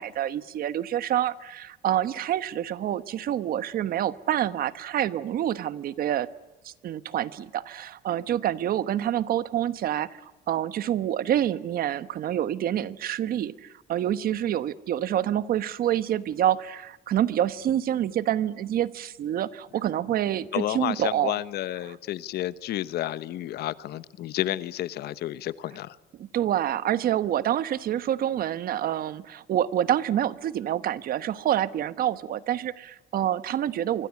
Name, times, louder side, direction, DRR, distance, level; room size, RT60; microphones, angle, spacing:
voice 1, 0.0-6.3 6.6-10.2 10.5-21.4 26.2-34.1, right 11 dB, 60° right, 15 dB, 1.1 m, -27 dB
voice 2, 20.5-26.0, left 13 dB, 70° left, 16 dB, 1.0 m, -31 dB
25.0 x 25.0 x 8.3 m, 1.1 s
cardioid pair, 110°, 17 cm